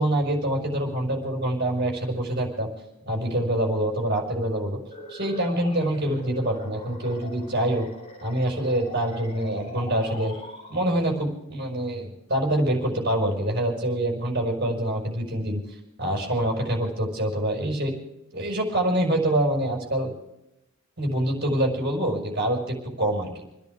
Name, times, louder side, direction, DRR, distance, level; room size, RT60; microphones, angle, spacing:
voice 1, 0.0-2.7 3.1-4.8 5.1-7.9 8.2-10.3 10.7-15.6 16.0-17.9 18.3-20.1 21.0-23.4, right 1 dB, 50° right, 1 dB, 5.5 m, -25 dB
sound 1, 4.8-11.2, left 2 dB, 30° left, 3.6 m, -42 dB
29.5 x 10.5 x 3.6 m, 0.90 s
head